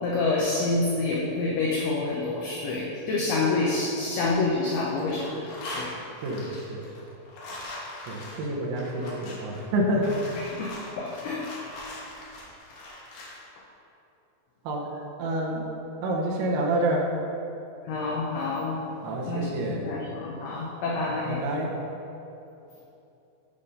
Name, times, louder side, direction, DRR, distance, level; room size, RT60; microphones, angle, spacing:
voice 1, 0.0-6.0 10.4-11.5 17.9-18.8 19.3-21.4, left 3 dB, 85° left, -3 dB, 2.2 m, -28 dB
sound 1, 4.1-4.7 5.0-13.4, left 1 dB, 70° left, 2.3 m, -41 dB
voice 2, 8.1-10.0 14.6-14.8 15.2-15.6 16.0-17.0 19.0-19.8 21.3-21.7, right 1 dB, 80° right, -2 dB, 3.1 m, -28 dB
8.5 x 3.6 x 5.3 m, 2.9 s
omnidirectional pair, 5.3 m